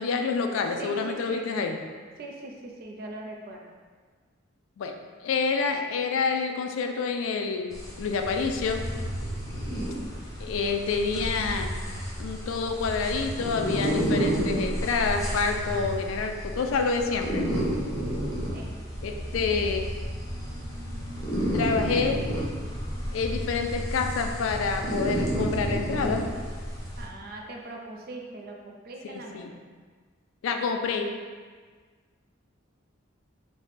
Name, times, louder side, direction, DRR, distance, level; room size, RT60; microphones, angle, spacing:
voice 1, 0.0-1.8 4.8-4.9 5.2-8.8 10.4-11.8 12.2-17.4 19.0-19.9 21.5-22.3 23.1-26.3 29.0-29.6 30.4-31.1, left 4 dB, 70° left, 5 dB, 0.3 m, -28 dB
voice 2, 0.8-1.8 2.2-2.5 2.8-3.6 18.5-18.7 27.0-29.4, right 2 dB, 45° right, 0 dB, 0.4 m, -40 dB
sound 1, 7.7-27.1, equal, 15° left, 0.5 m, -31 dB
3.3 x 2.1 x 3.9 m, 1.5 s
head